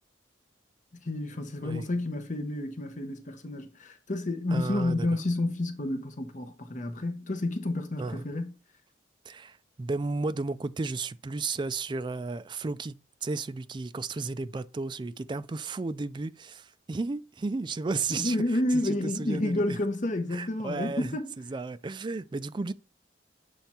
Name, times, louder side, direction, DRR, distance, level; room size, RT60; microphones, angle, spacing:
voice 1, 0.9-8.5 18.1-21.5, left 1 dB, 40° left, 0.8 m, -30 dB
voice 2, 4.5-5.1 8.0-8.2 9.3-18.4 18.7-19.8 20.3-21.2 21.5-22.7, right 3 dB, 25° right, 0.3 m, -33 dB
7.2 x 3.4 x 4.3 m
head